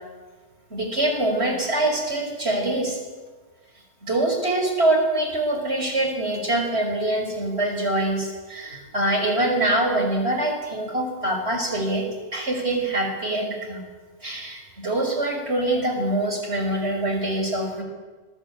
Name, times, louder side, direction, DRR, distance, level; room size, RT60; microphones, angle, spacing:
voice 1, 0.7-3.0 4.0-12.0 12.3-13.8 14.2-17.8, right 1 dB, 55° right, 3 dB, 6.0 m, -24 dB
25.5 x 22.5 x 8.9 m, 1.3 s
omnidirectional pair, 1.3 m